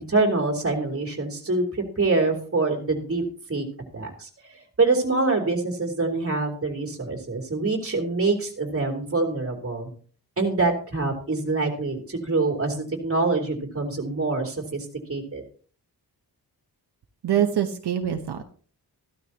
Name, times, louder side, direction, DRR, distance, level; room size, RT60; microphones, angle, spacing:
voice 1, 0.0-3.2 3.5-3.7 3.9-9.9 10.4-15.4, right 3 dB, 35° right, 2 dB, 3.2 m, -25 dB
voice 2, 17.2-18.4, right 9 dB, 80° right, 5 dB, 1.0 m, -24 dB
14.5 x 12.5 x 2.9 m, 0.43 s
wide cardioid pair, 125°, 39 cm